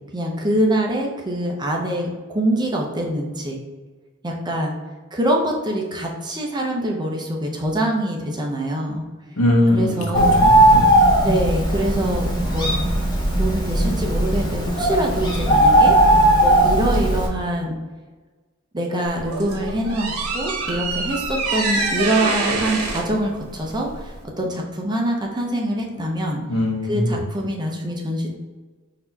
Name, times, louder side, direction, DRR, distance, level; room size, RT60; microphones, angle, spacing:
voice 1, 0.1-3.6 4.2-4.7 5.1-9.0 9.7-10.5 11.2-12.7 13.4-16.0 16.4-17.8 18.7-26.4 26.9-28.3, right 1 dB, 20° right, 0 dB, 0.6 m, -24 dB
voice 2, 9.4-10.8 26.5-27.2, left 1 dB, 70° left, 1 dB, 0.9 m, -21 dB
Bird, 10.1-17.3, right 1 dB, 20° left, 0.9 m, -17 dB
sound 1, 19.0-24.2, right 3 dB, 80° right, 0.9 m, -26 dB
4.1 x 2.7 x 4.4 m, 1.3 s
head